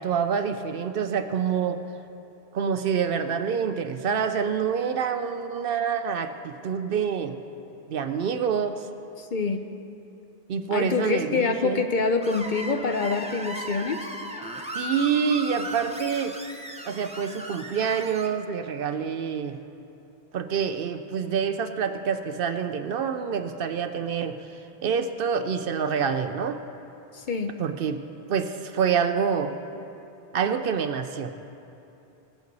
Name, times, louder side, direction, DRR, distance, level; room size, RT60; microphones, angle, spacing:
voice 1, 0.0-1.8 2.5-7.3 7.9-8.9 10.5-11.8 14.7-16.4 16.8-19.6 20.3-24.5 24.8-26.6 27.6-28.0 28.3-29.5 30.3-31.3, right 7 dB, 65° right, 8 dB, 0.7 m, -27 dB
voice 2, 9.2-9.6 10.7-14.1 27.1-27.5, left 4 dB, 55° left, 6 dB, 0.7 m, -26 dB
Screech, 12.2-18.3, right 1 dB, 10° right, 0.5 m, -37 dB
19.5 x 8.3 x 3.9 m, 2.8 s
omnidirectional pair, 1.1 m